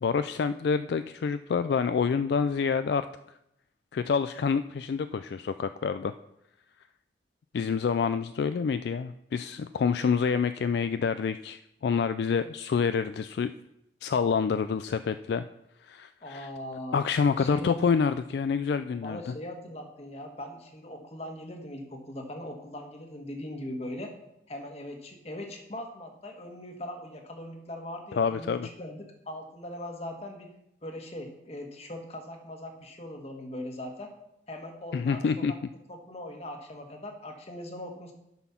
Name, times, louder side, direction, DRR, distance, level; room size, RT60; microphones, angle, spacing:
voice 1, 0.0-3.1 3.9-6.1 7.5-13.5 14.0-15.4 15.8-16.5 16.9-19.3 28.2-28.7 34.9-35.5, left 5 dB, 65° left, 11 dB, 0.3 m, -27 dB
voice 2, 16.2-17.0 17.4-17.8 19.0-24.1 24.5-30.5 30.8-34.1 34.5-35.6 35.9-38.1, left 1 dB, 35° left, 3 dB, 1.4 m, -40 dB
9.6 x 6.1 x 5.8 m, 0.83 s
head